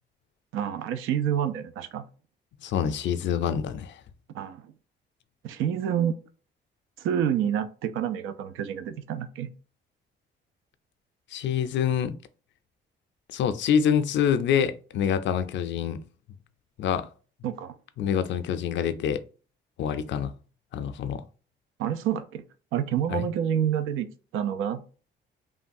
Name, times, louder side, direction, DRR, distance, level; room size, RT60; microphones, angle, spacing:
voice 1, 0.5-2.1 4.3-4.7 5.4-6.2 7.0-9.5 17.4-17.8 21.8-22.4 22.7-24.8, right 9 dB, 85° right, 0.4 m, -28 dB
voice 2, 2.6-4.0 11.3-12.1 13.3-16.0 16.8-17.1 18.0-19.2 19.8-20.4 20.7-21.2 23.1-23.3, left 8 dB, 65° left, 0.4 m, -26 dB
3.1 x 2.2 x 2.6 m
cardioid pair, 90°, 20 cm